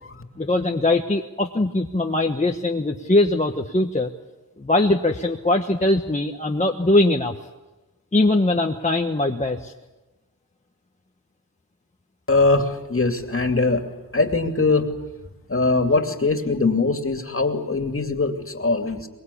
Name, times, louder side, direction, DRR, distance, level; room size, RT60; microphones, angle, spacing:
voice 1, 0.4-4.1 4.6-7.3 8.1-9.7, left 2 dB, 20° left, 2 dB, 1.2 m, -21 dB
voice 2, 12.3-13.8 14.1-14.9 15.5-19.1, left 3 dB, 35° left, 5 dB, 2.5 m, -21 dB
23.5 x 22.0 x 8.5 m, 1.1 s
wide cardioid pair, 105°, 37 cm